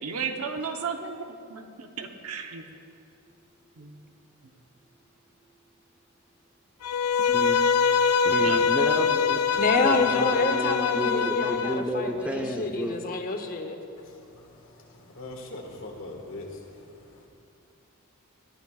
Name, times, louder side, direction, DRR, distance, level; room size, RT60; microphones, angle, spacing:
voice 1, 0.0-2.6 3.8-4.0 8.4-8.7, right 5 dB, 85° right, 4 dB, 1.0 m, -34 dB
Bowed string instrument, 6.8-11.8, left 6 dB, 85° left, 0.4 m, -24 dB
voice 2, 7.3-7.7 8.2-9.4 9.8-13.0, equal, 5° right, 3 dB, 0.8 m, -31 dB
voice 3, 9.5-13.8, left 3 dB, 40° left, 6 dB, 0.9 m, -27 dB
voice 4, 14.0-17.3, left 2 dB, 65° left, 0 dB, 1.7 m, -42 dB
19.5 x 12.5 x 2.4 m, 2.6 s
head